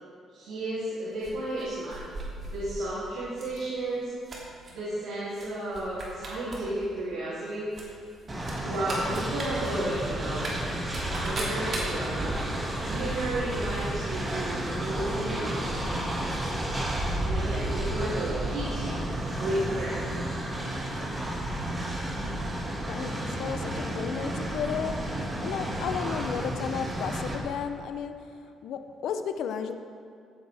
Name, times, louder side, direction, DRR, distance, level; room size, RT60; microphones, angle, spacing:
voice 1, 0.3-2.1 2.4-4.1 4.7-7.7 8.6-10.5 11.1-12.4 12.8-16.2 17.2-19.1 19.4-20.3, right 1 dB, 90° right, -11 dB, 3.0 m, -33 dB
sound 1, 1.2-2.8 3.3-3.6 3.9-4.7 5.3-5.5 5.7-6.6 6.9-7.0 7.7-13.9 14.1-14.2, right 2 dB, 50° right, 2.9 m, -38 dB
Train, 8.3-27.3, right 1 dB, 25° right, 2.1 m, -32 dB
voice 2, 22.9-29.7, left 7 dB, 80° left, 8 dB, 0.7 m, -34 dB
16.0 x 8.1 x 3.5 m, 2.3 s
cardioid pair, 90°, 0 cm